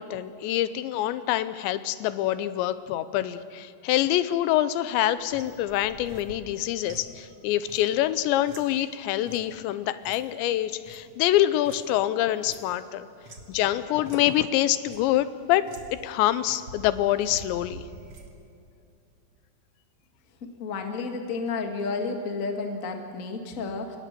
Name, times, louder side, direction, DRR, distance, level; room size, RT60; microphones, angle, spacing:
voice 1, 0.0-13.1 13.5-15.7 16.0-17.8, left 13 dB, 90° left, 14 dB, 3.1 m, -25 dB
sound 1, 5.2-12.0 12.2-13.5 14.0-14.2 14.6-15.1 15.6-16.1 16.4-18.3, right 2 dB, 40° right, 2.2 m, -47 dB
voice 2, 20.6-24.0, left 4 dB, 35° left, 3 dB, 1.2 m, -31 dB
26.5 x 20.5 x 6.8 m, 2.6 s
omnidirectional pair, 5.0 m